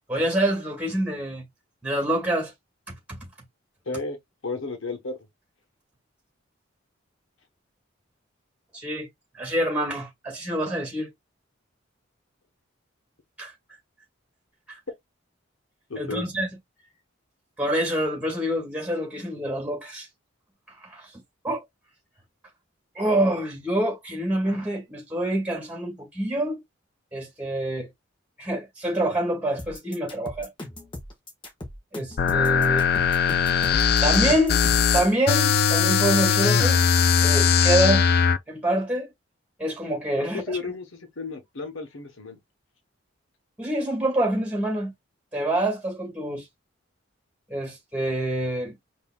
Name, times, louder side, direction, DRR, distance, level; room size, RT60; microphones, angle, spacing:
voice 1, 0.1-1.4 1.8-2.5 3.1-3.2 8.7-9.1 9.3-11.1 13.4-13.5 14.7-14.8 16.0-16.5 17.6-20.1 20.8-21.6 23.0-26.6 27.1-27.9 28.4-30.5 31.9-32.9 34.0-34.6 34.9-36.8 37.2-38.1 38.5-39.1 39.6-40.4 43.6-44.9 45.3-46.5 47.5-48.7, right 1 dB, 5° right, 2.0 m, -26 dB
voice 2, 3.8-4.2 4.4-5.2 15.9-16.2 40.2-42.4, left 3 dB, 75° left, 1.2 m, -33 dB
sound 1, 29.6-35.0, left 1 dB, 25° left, 1.3 m, -39 dB
sound 2, 32.2-38.4, left 6 dB, 50° left, 0.4 m, -20 dB
5.4 x 2.8 x 2.3 m
head